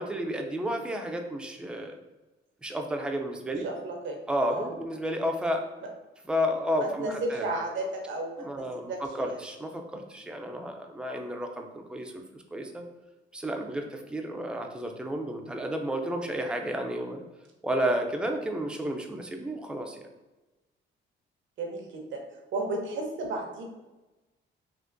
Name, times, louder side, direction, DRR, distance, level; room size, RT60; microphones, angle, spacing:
voice 1, 0.0-2.0 2.6-3.7 4.3-5.7 6.3-7.5 8.4-12.8 13.3-17.2 17.6-20.1, equal, 5° right, 3 dB, 0.4 m, -32 dB
voice 2, 3.4-4.2 4.5-4.7 6.8-9.4 21.6-22.2 22.5-23.6, right 2 dB, 70° right, 1 dB, 0.8 m, -33 dB
3.6 x 2.5 x 2.5 m, 1.1 s
cardioid pair, 90°, 20 cm